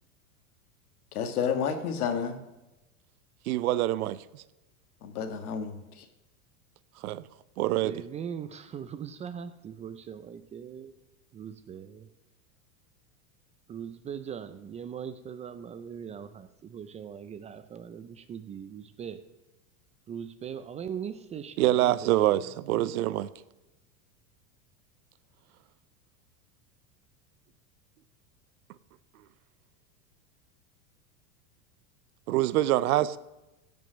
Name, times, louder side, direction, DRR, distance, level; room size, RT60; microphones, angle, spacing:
voice 1, 1.1-2.4 5.0-6.1, left 7 dB, 90° left, 7 dB, 1.7 m, -30 dB
voice 2, 3.5-4.4 7.0-7.2 7.6-8.0 21.6-23.3 32.3-33.2, right 14 dB, 80° right, 17 dB, 0.7 m, -25 dB
voice 3, 7.8-10.9 11.3-12.1 13.7-19.2 20.1-23.2, right 8 dB, 15° right, 11 dB, 0.3 m, -40 dB
15.5 x 5.5 x 6.3 m, 0.99 s
supercardioid pair, 130°, 43 cm